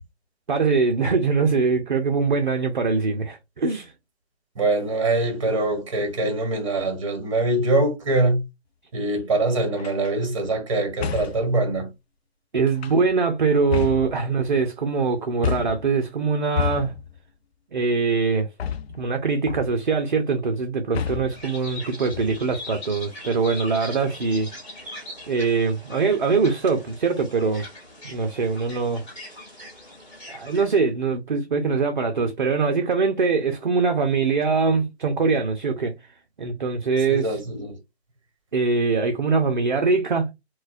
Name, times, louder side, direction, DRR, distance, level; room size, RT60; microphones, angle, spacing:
voice 1, 0.5-3.9 12.5-16.9 17.7-18.5 19.0-24.5 25.3-27.6 28.0-29.0 30.3-36.0 36.4-37.4 38.5-40.3, right 4 dB, 45° right, 0.5 m, -22 dB
voice 2, 4.6-8.4 8.9-11.9 37.1-37.8, right 2 dB, 30° right, 1.0 m, -23 dB
sound 1, 9.8-10.1 11.0-11.5 12.7-13.2 13.7-14.6 15.4-15.9 16.6-17.2 18.6-19.2 19.5-19.9 20.9-21.5 22.1-22.6, left 8 dB, 65° left, 0.5 m, -29 dB
sound 2, 21.3-30.8, left 1 dB, 25° left, 1.8 m, -41 dB
4.0 x 2.2 x 2.5 m
figure-of-eight pair, 165°, 33 cm